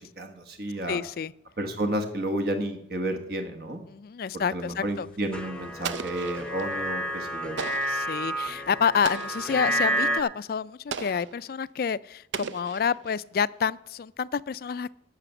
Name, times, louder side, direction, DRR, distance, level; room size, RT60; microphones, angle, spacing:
voice 1, 0.0-1.0 1.6-3.8 4.3-7.6, right 1 dB, 55° right, 6 dB, 1.3 m, -31 dB
voice 2, 0.9-1.3 3.9-5.1 7.9-14.9, left 6 dB, 55° left, 18 dB, 0.3 m, -28 dB
sound 1, 5.3-10.2, right 1 dB, 5° left, 0.8 m, -30 dB
Explosion, 5.8-6.7 7.6-8.1 9.0-9.6 10.9-11.4 12.3-13.2, right 6 dB, 85° right, 0.6 m, -36 dB
12.0 x 6.6 x 7.1 m, 0.74 s
head